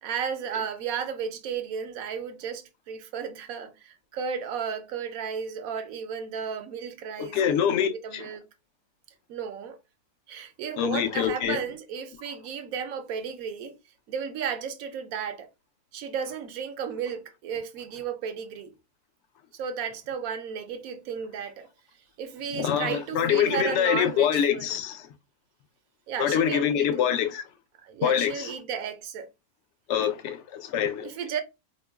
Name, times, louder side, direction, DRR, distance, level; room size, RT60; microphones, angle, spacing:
voice 1, 0.0-7.4 7.9-8.4 9.3-9.8 10.3-13.8 14.1-15.5 15.9-18.7 19.5-21.7 22.2-24.8 26.1-27.2 27.8-29.3 31.0-31.4, right 7 dB, 75° right, 1.0 m, -34 dB
voice 2, 7.2-8.2 10.8-11.6 22.5-25.0 26.2-27.4 28.0-28.5 29.9-31.1, left 9 dB, 65° left, 0.8 m, -25 dB
4.4 x 2.9 x 2.2 m
omnidirectional pair, 1.6 m